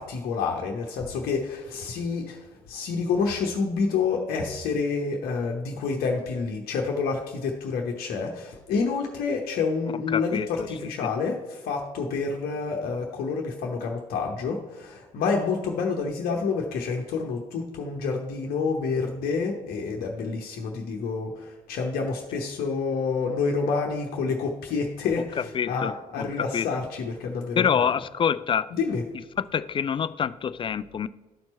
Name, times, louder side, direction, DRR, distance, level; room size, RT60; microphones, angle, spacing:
voice 1, 0.0-27.9 28.7-29.0, left 4 dB, 60° left, 0.9 m, -28 dB
voice 2, 10.1-10.7 11.0-11.1 25.4-26.7 27.6-28.7 29.4-31.1, left 7 dB, 30° left, 0.3 m, -26 dB
11.5 x 4.4 x 4.2 m
figure-of-eight pair, 45°, 18 cm